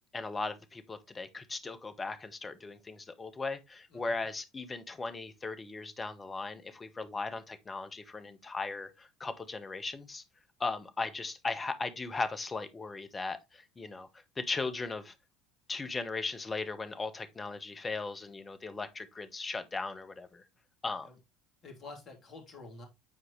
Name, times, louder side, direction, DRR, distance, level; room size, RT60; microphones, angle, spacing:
voice 1, 0.1-10.2 10.6-14.1 14.4-15.1 15.7-20.4 20.8-21.1, left 3 dB, 20° left, 1.1 m, -37 dB
voice 2, 3.9-4.2 21.0-21.2 21.6-22.9, left 3 dB, 35° left, 3.1 m, -48 dB
8.9 x 4.6 x 3.2 m
figure-of-eight pair, 65°, 0 cm